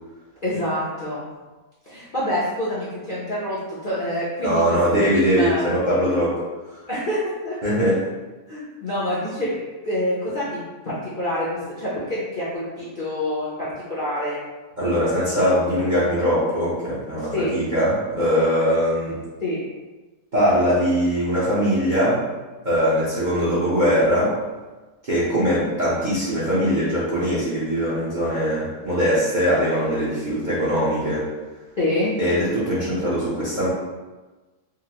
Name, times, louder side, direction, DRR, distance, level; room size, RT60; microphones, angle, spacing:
voice 1, 0.4-1.3 1.9-4.8 5.1-5.7 6.9-7.6 8.5-14.4 17.3-17.5 19.4-19.6 31.8-32.1, left 1 dB, 45° left, -9 dB, 0.6 m, -27 dB
voice 2, 4.4-6.4 7.6-8.0 14.8-19.2 20.3-22.2 22.6-24.4 25.0-31.3 32.2-33.7, equal, 40° right, -10 dB, 0.7 m, -21 dB
3.8 x 2.0 x 2.9 m, 1.2 s
omnidirectional pair, 1.6 m